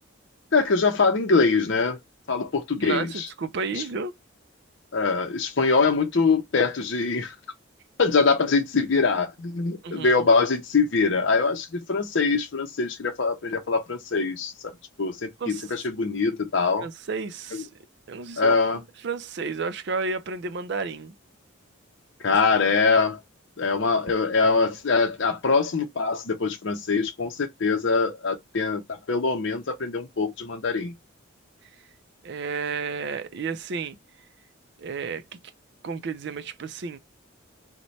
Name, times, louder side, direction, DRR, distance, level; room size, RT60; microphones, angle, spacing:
voice 1, 0.5-2.0 2.3-3.3 3.8-3.9 4.9-7.3 8.0-14.7 15.0-16.9 17.5-17.6 18.4-18.8 22.2-23.2 23.6-30.9, left 4 dB, 60° left, 0.6 m, -23 dB
voice 2, 2.8-4.1 9.8-10.3 15.4-15.7 16.8-17.7 18.1-18.6 19.0-21.1 22.2-22.6 32.2-34.0 34.8-35.2 35.8-37.0, right 4 dB, 55° right, 0.4 m, -32 dB
3.1 x 2.2 x 4.0 m
head